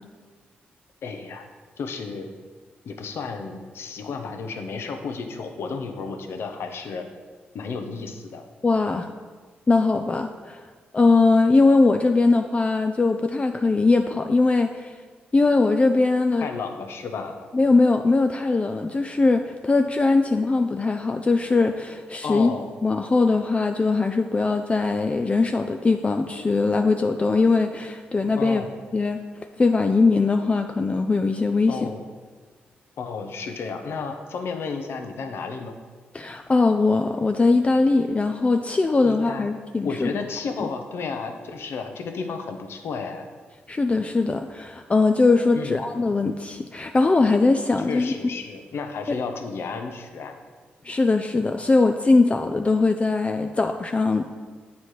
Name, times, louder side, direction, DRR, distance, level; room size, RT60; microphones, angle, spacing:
voice 1, 1.0-1.4 1.8-2.3 2.8-7.1 7.5-8.4 16.4-17.5 22.2-22.7 28.3-28.7 31.7-32.0 33.0-35.7 39.0-39.5 39.8-43.3 45.5-45.9 47.9-50.4, left 4 dB, 70° left, 6 dB, 0.7 m, -32 dB
voice 2, 8.6-9.1 9.7-10.6 10.9-14.9 15.3-16.5 17.5-22.5 22.8-28.6 28.9-29.2 29.6-31.8 36.1-40.1 43.7-48.1 49.1-49.2 50.8-54.2, left 3 dB, 30° left, 6 dB, 0.4 m, -21 dB
7.5 x 4.2 x 4.7 m, 1.5 s
supercardioid pair, 50°, 4 cm